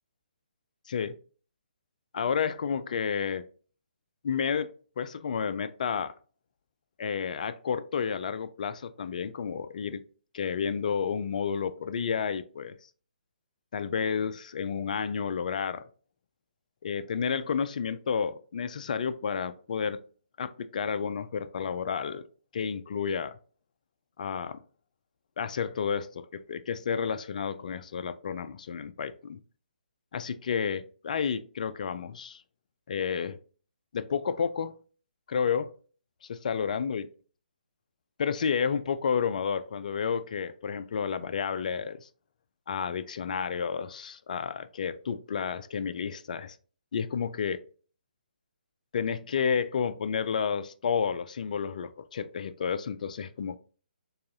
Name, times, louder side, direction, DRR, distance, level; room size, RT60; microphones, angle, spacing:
voice 1, 2.1-3.4 4.2-4.7 5.0-6.1 7.0-10.0 10.3-12.7 13.7-15.9 16.8-20.0 20.4-22.2 22.5-23.4 24.2-24.6 25.4-29.4 30.1-32.4 32.9-33.4 33.9-34.7 35.3-35.7 36.3-37.1 38.2-42.1 42.7-46.6 46.9-47.6 48.9-53.6, left 6 dB, 55° left, 0.4 m, -31 dB
6.5 x 2.4 x 2.6 m
figure-of-eight pair, 140°, 5 cm